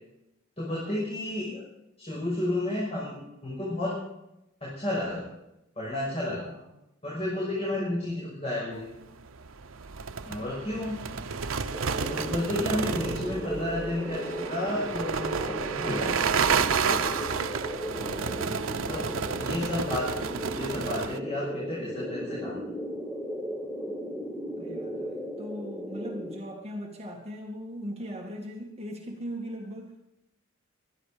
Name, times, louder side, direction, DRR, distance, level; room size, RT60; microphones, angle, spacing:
voice 1, 0.6-1.6 2.0-4.0 4.6-5.3 5.8-6.4 7.0-8.9 10.2-11.0 12.1-16.2 18.9-19.0 19.4-20.1 20.5-22.6, left 1 dB, 30° left, -6 dB, 6.0 m, -32 dB
voice 2, 6.3-6.9 24.6-29.9, equal, 30° right, 0 dB, 2.1 m, -39 dB
sound 1, 9.2-21.2, right 6 dB, 85° right, 0.8 m, -31 dB
sound 2, 11.7-26.4, equal, 10° left, 2.5 m, -36 dB
23.5 x 11.0 x 5.1 m, 0.88 s
head